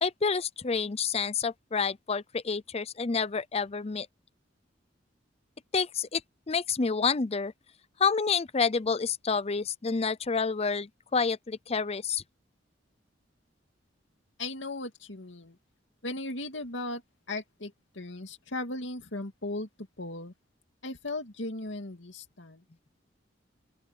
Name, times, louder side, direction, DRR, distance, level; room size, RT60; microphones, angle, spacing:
voice 1, 0.0-4.1 5.7-6.2 6.5-7.5 8.0-12.2, left 5 dB, 35° left, 0.6 m, -28 dB
voice 2, 14.4-15.6 16.0-17.0 17.3-20.3 20.8-22.6, left 2 dB, 85° left, 2.4 m, -37 dB
open air
head